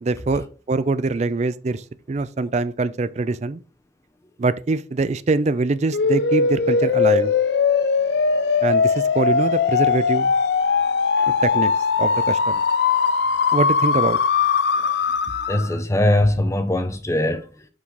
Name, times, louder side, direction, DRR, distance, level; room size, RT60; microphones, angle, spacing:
voice 1, 0.0-3.6 4.4-7.3 8.6-10.3 11.3-11.7 12.0-12.6 13.5-14.2, right 3 dB, 40° right, 0.4 m, -23 dB
sound 1, 5.9-15.8, left 5 dB, 60° left, 0.4 m, -20 dB
voice 2, 14.7-15.1 15.4-17.7, left 1 dB, 15° left, 0.7 m, -22 dB
5.9 x 4.8 x 3.9 m
head